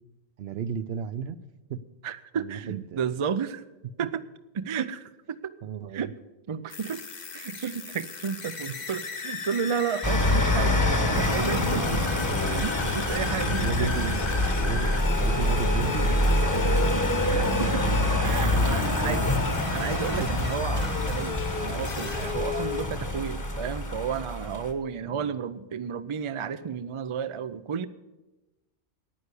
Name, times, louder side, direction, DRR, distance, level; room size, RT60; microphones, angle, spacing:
voice 1, 0.4-1.4 1.7-1.8 2.3-3.1 5.6-6.0 13.4-14.2 14.6-16.9 17.6-18.1 18.5-19.4 20.2-20.3 25.1-25.3, right 7 dB, 65° right, 14 dB, 0.8 m, -34 dB
voice 2, 2.0-3.6 4.0-4.2 4.5-5.5 5.9-6.1 6.5-7.0 7.3-12.0 12.4-13.9 17.3-17.9 18.2-19.2 19.7-27.9, right 7 dB, 50° right, 13 dB, 0.3 m, -32 dB
sound 1, 6.7-22.9, left 5 dB, 40° left, 0.9 m, -37 dB
sound 2, 10.0-24.7, left 1 dB, 15° left, 1.1 m, -26 dB
10.0 x 9.4 x 8.3 m, 1.1 s
omnidirectional pair, 1.2 m